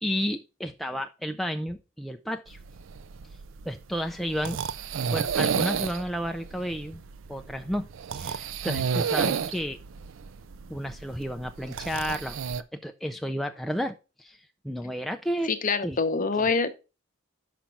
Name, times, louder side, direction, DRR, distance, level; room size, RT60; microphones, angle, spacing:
voice 1, 0.0-2.6 3.6-4.6 5.1-7.0 7.3-7.9 8.1-9.8 10.7-12.4 12.7-15.5 15.8-16.0 16.4-16.5, equal, ahead, 0.3 m, -32 dB
sound 1, 2.5-12.6, right 6 dB, 65° right, 0.4 m, -31 dB
voice 2, 15.4-16.7, left 4 dB, 40° left, 0.7 m, -25 dB
5.9 x 5.1 x 5.5 m
head